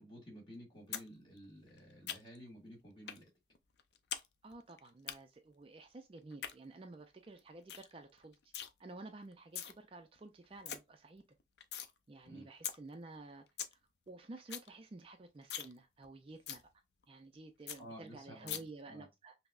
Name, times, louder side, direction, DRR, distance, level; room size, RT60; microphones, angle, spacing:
voice 1, 0.0-3.3 12.3-12.5 17.8-19.1, equal, 25° left, 1.7 m, -53 dB
sound 1, 0.9-1.1 1.4-2.5 3.1-3.2 3.6-4.3 4.5-5.1 6.2-6.5 7.0-7.1 7.4-7.5 7.7-7.9 8.2-8.7 9.3-9.7 10.2-10.3 10.4-10.8 11.2-11.9 12.3-12.4 12.6-12.8 13.1-13.2 13.4-13.7 14.1-14.2 14.4-14.7 15.0-15.1 15.4-15.7 16.0-16.1 16.5-16.6 17.0-17.1 17.3-17.4 17.7-17.8 18.5-18.6, left 9 dB, 70° left, 0.5 m, -41 dB
voice 2, 4.4-8.4 8.8-11.2 12.1-13.4 14.1-16.6 17.1-19.3, right 2 dB, 30° right, 0.3 m, -52 dB
5.6 x 2.0 x 2.4 m
head